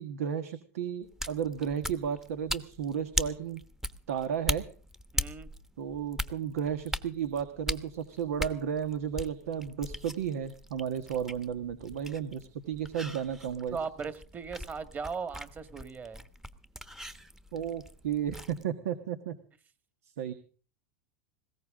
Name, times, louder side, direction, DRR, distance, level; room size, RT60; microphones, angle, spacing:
voice 1, 0.0-3.6 4.1-4.6 5.8-13.8 17.5-19.3 20.2-20.3, right 8 dB, 85° right, 9 dB, 1.6 m, -33 dB
sound 1, 1.0-18.6, equal, 5° right, 1.1 m, -39 dB
voice 2, 5.1-5.5 13.7-16.2, right 5 dB, 25° right, 11 dB, 1.8 m, -38 dB
19.5 x 16.5 x 3.7 m, 0.40 s
supercardioid pair, 120°, 8 cm